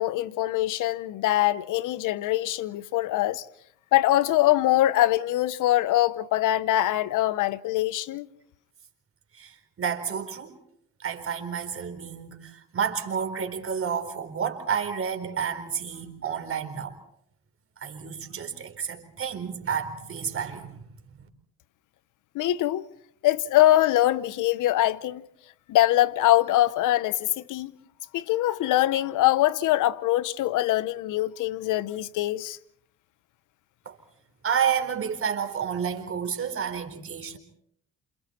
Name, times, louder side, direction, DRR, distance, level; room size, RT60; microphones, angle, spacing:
voice 1, 0.0-3.4 3.9-8.3 22.3-22.8 23.2-25.2 25.7-27.7 28.1-32.6, left 14 dB, 85° left, 0.9 m, -23 dB
voice 2, 9.3-10.6 11.0-17.0 17.8-20.8 21.2-21.3 33.8-34.0 34.4-37.4, right 7 dB, 45° right, 4.3 m, -30 dB
29.0 x 27.5 x 4.4 m
cardioid pair, 90°, 30 cm